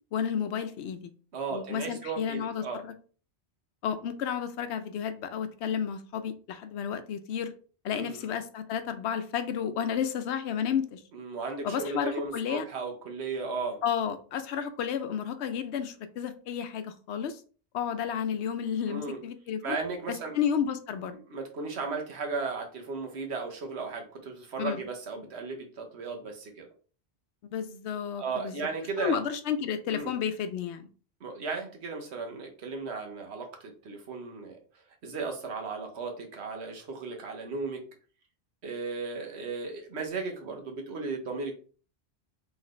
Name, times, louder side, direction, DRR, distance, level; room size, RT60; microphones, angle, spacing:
voice 1, 0.1-1.1 1.5-2.9 3.8-7.5 7.8-11.0 11.6-12.7 13.8-17.4 17.7-19.8 20.1-21.2 24.6-24.8 27.5-28.6 29.0-30.9, left 8 dB, 85° left, 10 dB, 0.9 m, -32 dB
voice 2, 1.3-2.8 7.9-8.3 11.1-13.8 18.9-19.2 19.6-20.4 21.3-26.7 28.2-29.2 29.9-30.1 31.2-34.6 35.0-37.9 38.6-41.5, right 4 dB, 80° right, 3 dB, 1.2 m, -35 dB
4.0 x 3.3 x 3.2 m, 0.40 s
omnidirectional pair, 1.1 m